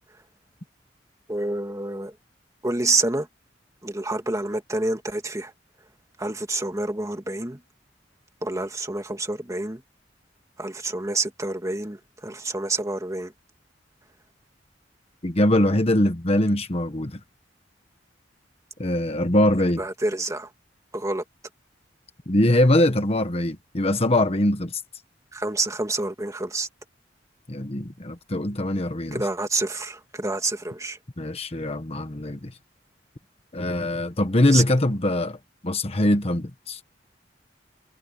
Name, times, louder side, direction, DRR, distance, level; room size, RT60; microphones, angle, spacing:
voice 1, 1.3-2.1 2.6-3.3 3.8-5.5 6.2-7.6 8.4-9.8 10.6-13.3 19.8-20.5 20.9-21.2 25.3-26.7 29.1-31.0 34.5-34.6, right 2 dB, 20° right, 2.2 m, -28 dB
voice 2, 15.2-17.2 18.8-19.8 22.3-24.8 27.5-29.2 31.2-32.5 33.5-35.4 35.6-36.8, left 1 dB, 35° left, 1.3 m, -22 dB
head